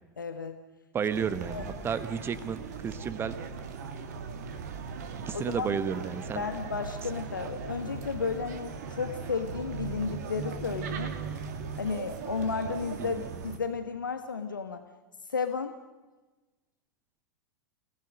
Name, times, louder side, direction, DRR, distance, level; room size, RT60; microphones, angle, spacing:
voice 1, 0.2-0.6 1.5-1.6 5.3-5.7 6.4-11.1 11.8-14.8 15.3-15.7, left 5 dB, 75° left, 8 dB, 1.3 m, -33 dB
voice 2, 0.9-3.4 5.3-6.4 13.0-13.4, right 7 dB, 20° right, 14 dB, 1.3 m, -32 dB
sound 1, 1.1-13.6, right 5 dB, 55° right, 2.3 m, -39 dB
29.5 x 18.5 x 6.5 m, 1.2 s
figure-of-eight pair, 90°, 11 cm